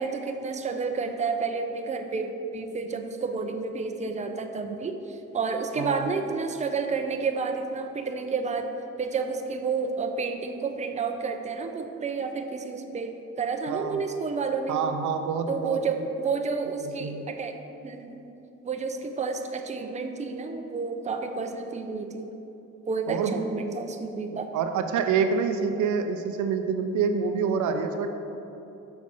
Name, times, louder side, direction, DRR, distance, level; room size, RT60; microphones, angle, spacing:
voice 1, 0.0-8.7 9.0-14.8 15.5-17.6 17.8-18.1 18.6-22.3 22.9-24.5, right 4 dB, 25° right, 5 dB, 0.6 m, -30 dB
voice 2, 13.7-14.0 14.7-16.1 16.8-17.3 23.1-23.4 24.5-28.1, right 6 dB, 75° right, 7 dB, 0.6 m, -27 dB
6.5 x 5.2 x 5.3 m, 3.0 s
cardioid pair, 90°, 30 cm